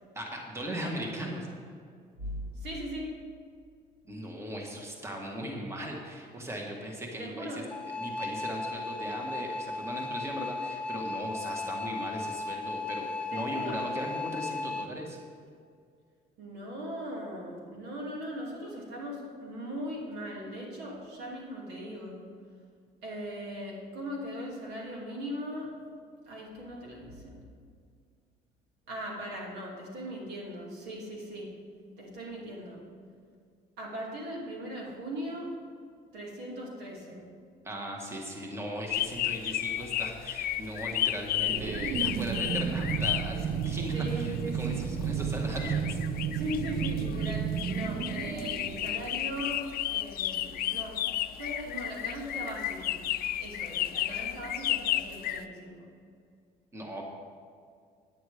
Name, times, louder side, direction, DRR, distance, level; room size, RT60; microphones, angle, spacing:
voice 1, 0.1-1.5 4.1-7.6 8.0-15.2 37.6-46.0 56.7-57.1, right 1 dB, 15° right, 0 dB, 1.6 m, -38 dB
voice 2, 2.2-3.2 7.2-7.7 13.3-13.8 16.4-22.3 23.0-25.8 26.2-27.5 28.9-31.6 32.0-32.8 33.8-35.6 36.1-37.3 43.9-44.9 46.1-53.0 53.4-56.0, equal, 80° right, -2 dB, 2.8 m, -39 dB
sound 1, 7.7-14.9, left 3 dB, 5° left, 0.5 m, -36 dB
sound 2, 38.9-55.4, left 13 dB, 60° left, 0.5 m, -33 dB
sound 3, 41.4-49.6, right 7 dB, 45° right, 0.4 m, -33 dB
9.6 x 9.2 x 5.0 m, 2.2 s
cardioid pair, 110°, 17 cm